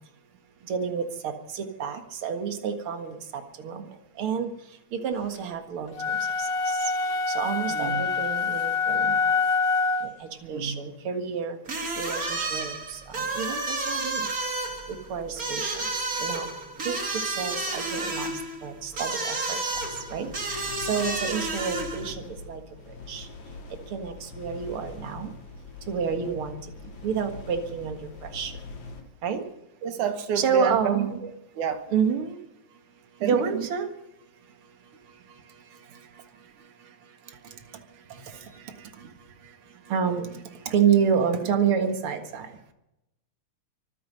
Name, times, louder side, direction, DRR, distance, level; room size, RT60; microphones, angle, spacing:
voice 1, 0.7-3.2 3.6-3.8 4.2-4.5 5.0-6.2 7.4-9.2 10.5-11.6 12.0-14.3 14.9-15.7 16.2-16.5 16.9-17.0 17.4-18.3 18.6-19.6 20.1-20.3 20.8-22.6 23.1-23.3 23.9-25.3 25.9-26.6 27.0-28.0 28.3-28.5 29.2-29.4 30.4-31.2 31.9-32.4 33.2-33.9 39.9-40.3 40.7-42.5, right 7 dB, 50° right, 6 dB, 2.3 m, -28 dB
sound 1, 5.9-10.2, left 4 dB, 90° left, 0.7 m, -26 dB
voice 2, 7.7-8.0 10.4-10.8 29.8-31.3 31.6-31.9 33.2-33.7, right 8 dB, 90° right, 7 dB, 2.9 m, -30 dB
sound 2, 11.7-22.1, right 2 dB, 30° right, 2.4 m, -31 dB
sound 3, 19.7-29.0, left 3 dB, 70° left, 4.1 m, -43 dB
24.5 x 10.0 x 5.5 m, 0.87 s
omnidirectional pair, 3.4 m